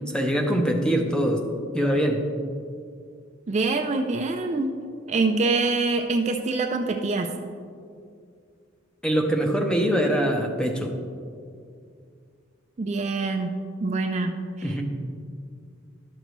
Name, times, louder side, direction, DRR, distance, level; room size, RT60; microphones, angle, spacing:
voice 1, 0.1-1.4 1.7-2.2 9.0-10.9 14.6-14.8, equal, 5° left, 3 dB, 0.7 m, -23 dB
voice 2, 3.5-4.8 5.1-7.3 12.8-14.8, right 3 dB, 35° right, 4 dB, 0.4 m, -25 dB
11.5 x 6.6 x 3.1 m, 2.2 s
head